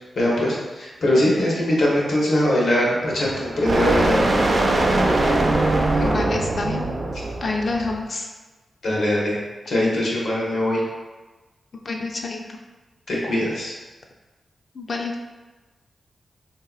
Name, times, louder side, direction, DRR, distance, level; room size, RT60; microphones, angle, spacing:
voice 1, 0.2-4.2 8.8-9.4 9.7-10.8 13.1-13.7, left 1 dB, 75° left, -4 dB, 0.9 m, -21 dB
sound 1, 3.0-8.0, right 2 dB, 45° right, 0.4 m, -21 dB
voice 2, 5.9-6.9 7.4-8.3 11.9-12.4 14.7-15.2, left 3 dB, 55° left, 1 dB, 0.4 m, -27 dB
3.6 x 2.7 x 2.3 m, 1.2 s
wide cardioid pair, 95°, 0 cm